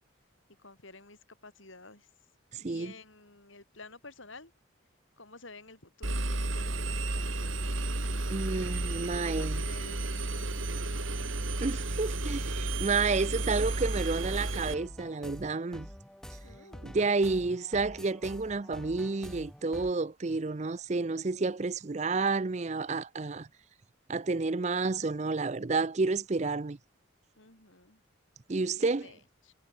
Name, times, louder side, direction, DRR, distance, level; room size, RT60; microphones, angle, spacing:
voice 1, 0.5-2.1 2.7-4.5 5.2-8.5 8.9-11.7 16.4-17.1 27.4-28.0 28.8-29.5, left 3 dB, 75° left, 6.0 m, -52 dB
voice 2, 2.5-2.9 8.3-9.6 11.6-15.9 16.8-23.5 24.1-26.8 28.5-29.1, right 3 dB, 35° right, 0.5 m, -30 dB
Engine, 6.0-14.7, right 2 dB, 80° right, 2.6 m, -32 dB
sound 1, 13.8-19.9, equal, 5° left, 1.7 m, -47 dB
head